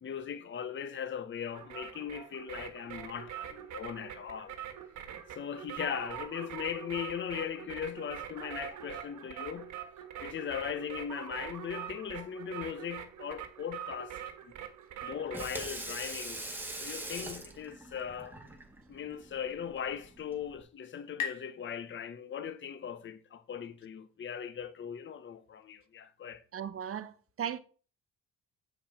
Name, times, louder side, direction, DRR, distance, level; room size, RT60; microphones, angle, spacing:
voice 1, 0.0-4.5 5.4-9.7 10.2-14.2 15.0-18.4 18.9-26.4, left 8 dB, 40° left, 0.8 m, -39 dB
sound 1, 1.5-15.7, right 10 dB, 75° right, 1.3 m, -44 dB
Water tap faucet / Sink (filling or washing), 15.1-20.6, right 2 dB, 5° right, 1.7 m, -43 dB
sound 2, 19.7-23.1, left 8 dB, 85° left, 1.8 m, -44 dB
voice 2, 26.5-27.6, right 8 dB, 50° right, 0.9 m, -37 dB
7.3 x 5.4 x 4.3 m
cardioid pair, 90°, 30 cm